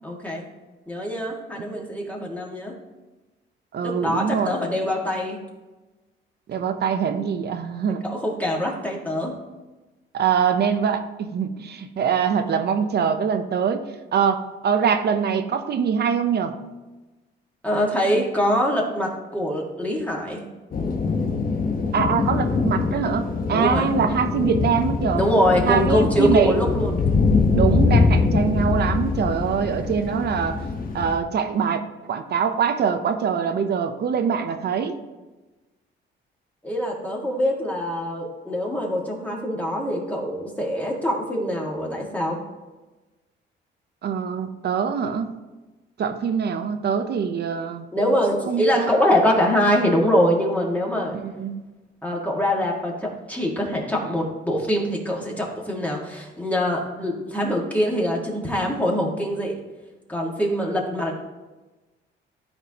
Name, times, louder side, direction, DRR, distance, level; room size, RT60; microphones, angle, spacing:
voice 1, 0.0-0.4 0.9-2.8 3.8-5.4 8.0-9.3 17.6-20.4 23.5-23.9 25.1-27.0 36.6-42.4 47.9-51.2 52.0-59.6 60.1-61.2, equal, 5° left, -2 dB, 1.9 m, -24 dB
voice 2, 3.7-4.5 6.5-8.0 10.1-13.8 14.1-16.6 21.9-25.3 25.6-26.5 27.5-30.6 30.9-35.0 44.0-45.4 46.0-47.9 48.5-48.9 51.1-51.6, right 7 dB, 55° right, 8 dB, 0.7 m, -23 dB
sound 1, 20.7-31.2, left 4 dB, 45° left, 1.0 m, -23 dB
12.5 x 4.5 x 2.9 m, 1.2 s
cardioid pair, 90°, 20 cm